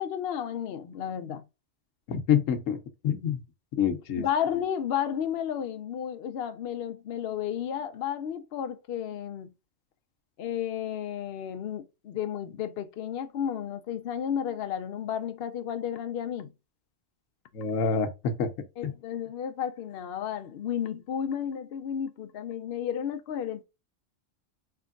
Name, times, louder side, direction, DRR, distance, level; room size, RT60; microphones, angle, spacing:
voice 1, 0.0-1.4 4.2-9.5 10.4-16.5 18.8-23.6, left 9 dB, 60° left, 0.7 m, -32 dB
voice 2, 2.1-2.8 3.0-3.4 3.8-4.2 17.5-18.5 18.8-18.9, left 7 dB, 80° left, 1.2 m, -26 dB
4.5 x 3.4 x 2.4 m
omnidirectional pair, 1.3 m